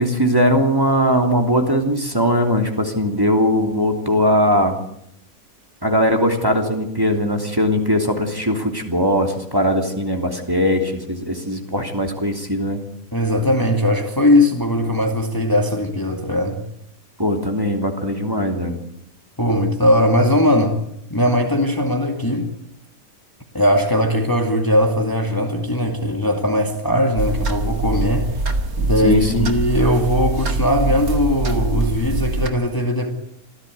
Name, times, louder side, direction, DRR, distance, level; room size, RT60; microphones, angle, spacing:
voice 1, 0.0-4.8 5.8-12.8 17.2-18.8 29.0-29.5, equal, 15° right, 3.1 m, -20 dB
voice 2, 13.1-16.6 19.4-20.8 21.1-22.5 23.5-28.3 28.8-33.1, left 1 dB, 15° left, 2.3 m, -19 dB
sound 1, 27.2-32.5, right 2 dB, 80° right, 2.5 m, -23 dB
26.5 x 15.5 x 9.5 m
omnidirectional pair, 1.5 m